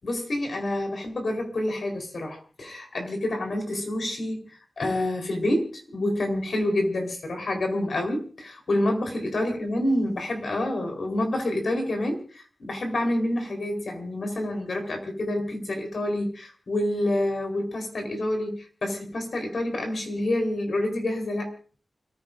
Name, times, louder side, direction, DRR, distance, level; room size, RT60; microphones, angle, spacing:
voice 1, 0.0-21.6, left 1 dB, 70° left, 3 dB, 4.3 m, -28 dB
29.0 x 15.0 x 2.7 m, 0.41 s
wide cardioid pair, 110°, 0 cm